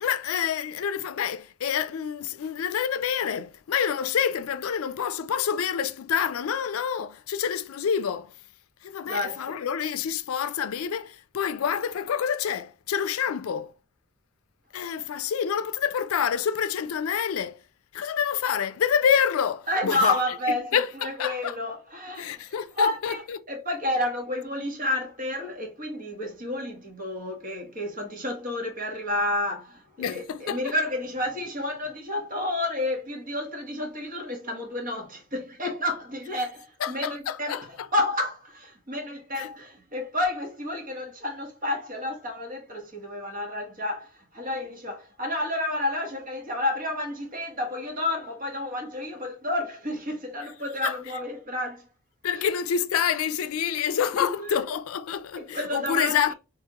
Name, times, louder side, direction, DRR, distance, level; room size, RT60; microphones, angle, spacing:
voice 1, 0.0-8.3 8.8-13.7 14.7-17.6 17.9-20.2 20.5-21.6 22.2-23.4 30.0-30.7 36.8-37.9 39.3-39.5 50.8-51.0 52.2-56.3, left 8 dB, 80° left, 0.4 m, -27 dB
voice 2, 9.1-9.5 19.7-51.9 52.3-52.4 54.4-54.6 55.4-56.3, left 1 dB, 40° right, 1.3 m, -30 dB
3.6 x 3.4 x 2.8 m
head